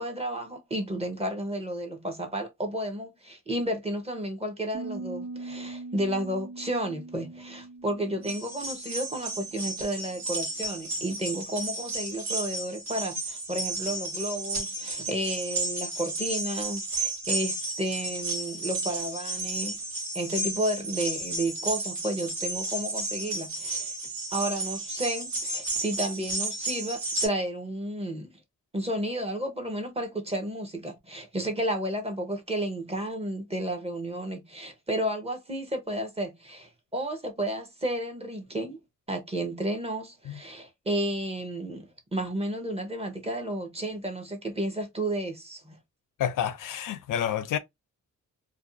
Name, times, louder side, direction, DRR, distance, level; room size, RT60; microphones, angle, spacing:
voice 1, 0.0-19.8 20.1-24.0 24.3-28.3 28.7-38.8 39.1-45.8, right 1 dB, 20° right, 0.7 m, -32 dB
Piano, 4.7-10.3, right 3 dB, 90° right, 1.1 m, -42 dB
sound 1, 8.2-27.3, right 2 dB, 65° right, 1.2 m, -33 dB
voice 2, 46.2-47.6, left 9 dB, 90° left, 0.5 m, -29 dB
2.5 x 2.2 x 2.5 m
wide cardioid pair, 135°, 31 cm